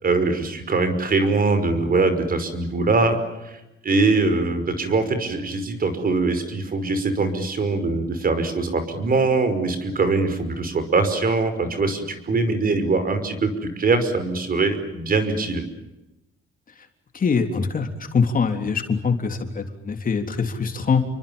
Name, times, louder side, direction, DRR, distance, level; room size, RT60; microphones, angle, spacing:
voice 1, 0.0-3.2 3.4-3.6 3.8-13.5 13.8-15.6, right 3 dB, 45° right, 10 dB, 5.5 m, -22 dB
voice 2, 17.1-21.0, left 5 dB, 40° left, 5 dB, 3.7 m, -23 dB
30.0 x 24.0 x 7.2 m, 0.95 s
cardioid pair, 120°, 21 cm